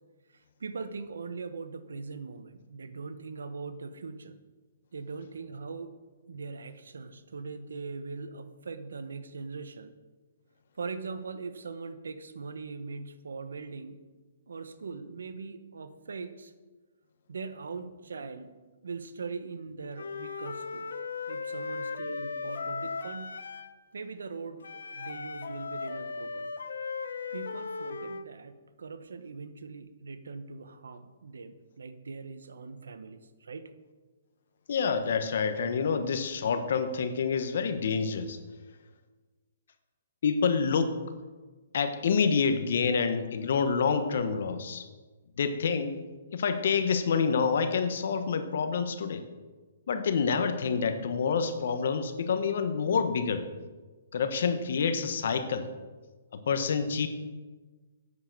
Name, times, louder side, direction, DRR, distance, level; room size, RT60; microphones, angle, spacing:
voice 1, 0.3-4.4 4.9-6.0 6.3-9.9 10.8-14.0 14.5-16.5 17.3-18.5 18.8-20.9 21.3-23.3 23.9-26.5 27.3-33.7, right 4 dB, 85° right, 10 dB, 1.0 m, -41 dB
Wind instrument woodwind instrument, 20.0-23.8 24.6-28.3, left 4 dB, 85° left, 0.7 m, -37 dB
voice 2, 34.7-38.4 40.2-41.0 41.7-44.9 45.4-45.9 46.3-49.2 49.9-53.5 54.1-55.7 56.5-57.1, left 5 dB, 65° left, 9 dB, 1.1 m, -27 dB
8.5 x 7.1 x 6.6 m, 1.3 s
hypercardioid pair, 150°, 0 cm